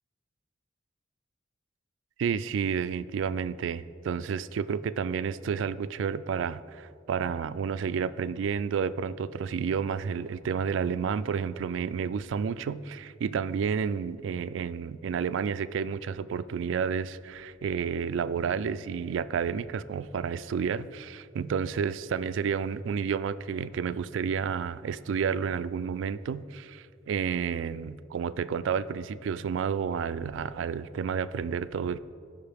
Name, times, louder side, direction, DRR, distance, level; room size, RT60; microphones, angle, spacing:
voice 1, 2.2-32.0, right 6 dB, 70° right, 15 dB, 0.3 m, -30 dB
16.0 x 5.6 x 3.5 m, 2.3 s
head